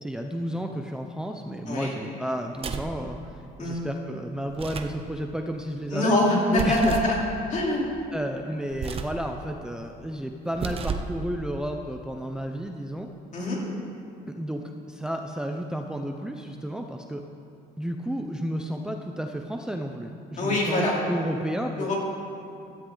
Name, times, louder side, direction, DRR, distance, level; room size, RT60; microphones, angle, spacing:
voice 1, 0.0-6.1 6.5-6.9 8.1-13.1 14.3-17.2 17.8-21.9, equal, 5° right, 3 dB, 0.7 m, -32 dB
sound 1, 2.5-3.0 4.5-5.0 6.5-7.2 8.7-9.2 10.5-11.2, right 5 dB, 35° right, 0.9 m, -32 dB
voice 2, 5.9-7.2 7.5-7.9 13.3-13.6 20.4-21.0 21.8-22.0, left 1 dB, 45° left, -3 dB, 3.7 m, -24 dB
16.5 x 13.0 x 4.0 m, 2.5 s
cardioid pair, 110°, 17 cm